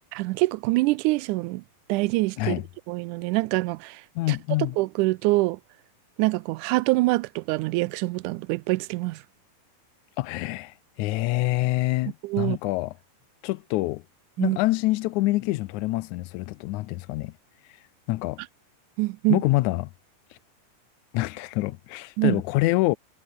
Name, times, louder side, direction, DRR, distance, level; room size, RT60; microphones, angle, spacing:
voice 1, 0.1-1.6 1.9-2.6 2.9-4.0 4.3-4.4 4.8-5.6 6.2-9.2 12.2-12.6 14.4-14.6 19.0-19.4 22.2-22.4, right 21 dB, 80° right, 2.0 m, -25 dB
voice 2, 4.2-4.7 10.2-12.9 13.4-14.0 14.4-17.3 18.1-18.4 19.3-19.9 21.1-23.0, left 19 dB, 75° left, 1.9 m, -26 dB
omnidirectional pair, 3.7 m